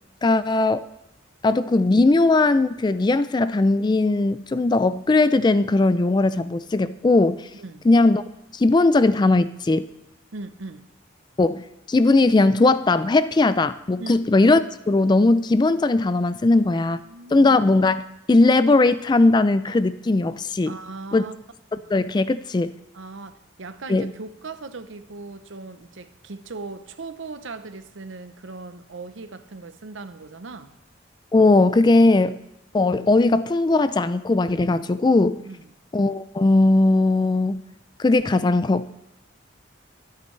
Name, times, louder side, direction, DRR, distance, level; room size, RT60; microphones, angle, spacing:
voice 1, 0.2-0.9 1.4-7.5 7.8-8.2 8.5-9.9 11.4-11.6 11.9-17.0 17.3-20.7 21.1-21.2 21.9-22.8 23.9-24.1 31.3-32.4 32.7-35.4 35.9-37.6 38.0-38.9, left 2 dB, 20° left, 0.3 m, -19 dB
voice 2, 7.5-7.9 10.3-10.8 14.0-14.2 16.7-17.5 19.7-19.8 20.7-21.3 21.8-21.9 22.9-30.8 35.5-35.6, right 3 dB, 75° right, 0.8 m, -38 dB
23.0 x 8.4 x 3.2 m
head